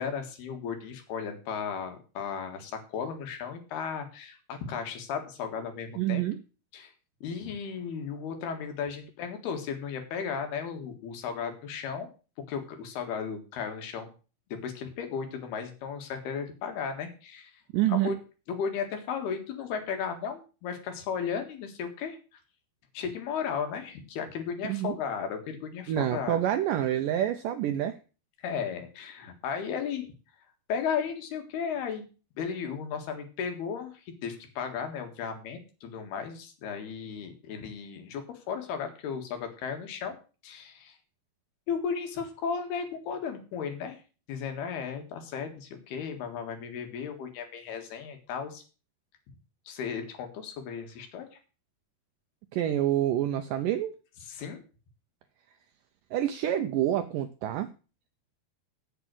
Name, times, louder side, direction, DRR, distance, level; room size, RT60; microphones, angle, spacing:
voice 1, 0.0-6.2 6.7-6.9 7.2-12.1 12.5-14.1 14.5-17.6 17.9-18.2 18.5-22.4 22.9-26.4 28.4-30.1 30.7-32.0 32.4-40.2 40.4-41.0 41.7-44.0 44.3-48.6 49.7-51.3 54.2-54.6, left 6 dB, 85° left, 5 dB, 3.8 m, -35 dB
voice 2, 6.0-6.4 17.7-18.1 24.6-25.0 25.9-28.0 52.5-53.9 56.1-57.7, right 12 dB, 80° right, 9 dB, 2.0 m, -27 dB
8.2 x 8.2 x 7.6 m, 0.35 s
omnidirectional pair, 4.4 m